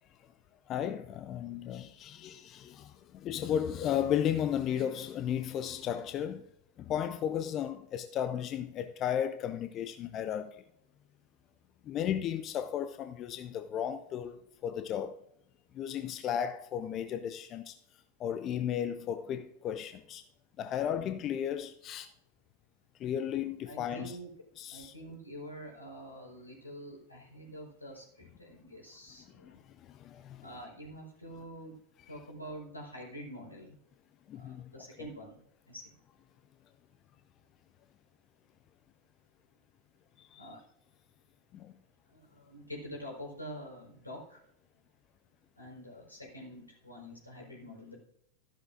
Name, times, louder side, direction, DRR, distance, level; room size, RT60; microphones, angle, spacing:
voice 1, 0.7-6.4 6.8-10.6 11.9-15.2 15.7-17.8 18.2-20.2 20.6-22.1 23.0-24.2 24.6-24.9 29.4-29.6 29.8-30.4 34.3-34.7 40.2-40.5 41.5-41.7, left 9 dB, 30° left, 0.6 m, -34 dB
voice 2, 20.7-21.0 23.6-24.3 24.7-29.6 30.4-31.8 32.1-33.8 34.3-35.9 40.4-40.6 42.1-44.4 45.6-48.0, equal, 85° left, 4.3 m, -46 dB
13.5 x 11.5 x 2.6 m
figure-of-eight pair, 90°, 0 cm